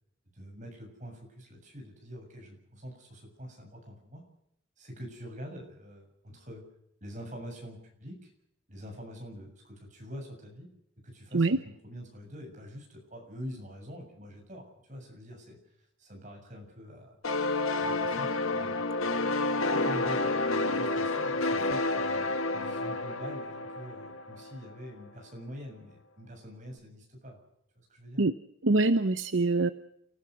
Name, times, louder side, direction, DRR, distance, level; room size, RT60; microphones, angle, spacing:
voice 1, 0.3-4.2 4.8-6.6 7.0-8.3 8.7-10.7 11.0-15.6 16.0-17.2 17.8-18.8 19.7-27.4 27.7-28.2, equal, 35° right, 3 dB, 7.3 m, -45 dB
sound 1, 17.2-24.7, left 2 dB, 75° left, 1.7 m, -30 dB
voice 2, 28.6-29.7, right 2 dB, 60° right, 12 dB, 0.8 m, -24 dB
29.5 x 16.0 x 6.4 m, 0.77 s
head